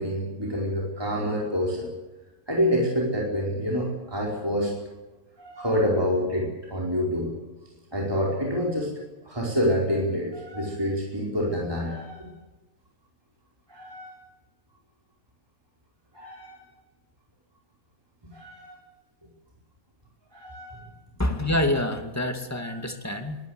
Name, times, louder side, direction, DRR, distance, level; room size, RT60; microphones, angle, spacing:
voice 1, 0.0-1.9 2.5-4.7 5.4-7.3 7.9-8.9 9.2-12.3 13.7-14.2 16.1-16.6 18.3-18.8 20.3-20.8 22.6-22.8, equal, 15° right, -3 dB, 4.8 m, -27 dB
voice 2, 21.2-23.4, left 1 dB, 10° left, 5 dB, 2.4 m, -26 dB
23.0 x 18.5 x 8.0 m, 1.1 s
omnidirectional pair, 1.6 m